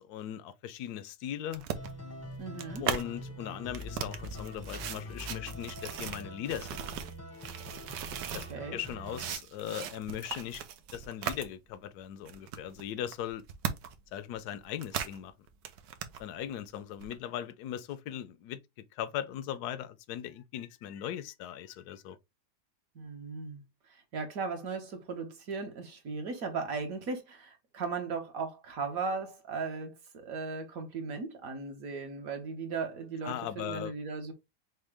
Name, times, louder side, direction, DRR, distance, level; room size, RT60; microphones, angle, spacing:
voice 1, 0.0-1.6 2.8-6.8 8.3-8.4 8.7-10.6 10.9-13.4 14.1-15.3 16.2-18.6 18.9-22.2 33.2-33.9, left 10 dB, 75° left, 1.1 m, -39 dB
sound 1, 1.5-3.0 3.6-8.5 8.8-11.5 11.8-11.9 12.3-14.1 14.3-15.2 15.5-16.2 17.0-17.1, right 9 dB, 85° right, 1.3 m, -38 dB
sound 2, 1.7-9.3, left 1 dB, 15° left, 0.7 m, -44 dB
voice 2, 2.4-2.9 8.5-8.8 22.9-34.3, right 4 dB, 60° right, 1.4 m, -37 dB
6.3 x 2.2 x 3.3 m
omnidirectional pair, 1.8 m